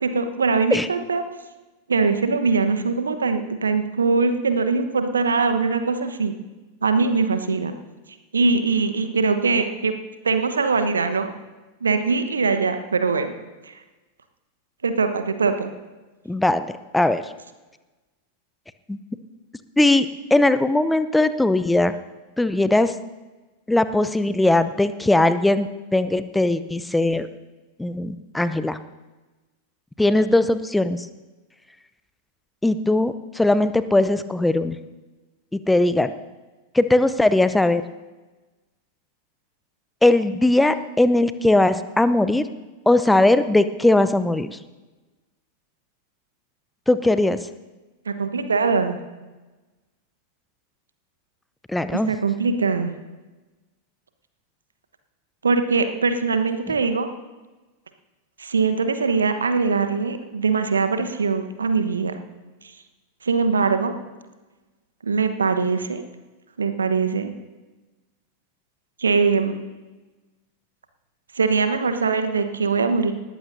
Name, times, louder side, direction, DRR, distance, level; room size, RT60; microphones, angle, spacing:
voice 1, 0.0-1.2 1.9-6.3 6.8-7.7 8.3-9.9 10.2-11.3 11.8-13.3 13.7-13.8 14.8-15.7 48.1-49.0 51.9-52.9 55.4-57.1 58.4-62.2 63.2-63.9 65.0-66.0 66.6-67.3 69.0-69.5 71.4-73.1, right 4 dB, 75° right, 9 dB, 1.1 m, -22 dB
voice 2, 16.3-16.7 16.9-17.2 18.9-19.0 19.8-22.0 22.4-22.9 23.7-27.3 27.8-28.8 30.0-31.1 32.6-34.8 35.5-36.1 36.7-37.8 40.0-42.5 42.9-44.6 46.9-47.4 51.7-52.1, left 2 dB, 5° left, 13 dB, 0.6 m, -19 dB
19.5 x 14.5 x 2.7 m, 1.2 s
figure-of-eight pair, 90°, 0 cm